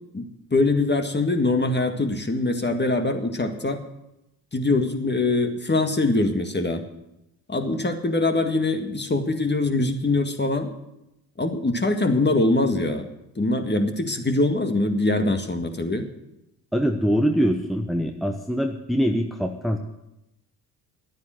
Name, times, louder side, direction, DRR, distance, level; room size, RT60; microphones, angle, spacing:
voice 1, 0.1-3.8 4.5-6.8 7.5-10.7 11.4-13.1 13.4-16.1, left 2 dB, 25° left, 6 dB, 1.9 m, -23 dB
voice 2, 16.7-19.8, equal, ahead, 4 dB, 1.0 m, -23 dB
11.0 x 9.3 x 7.7 m, 0.89 s
supercardioid pair, 50°, 43 cm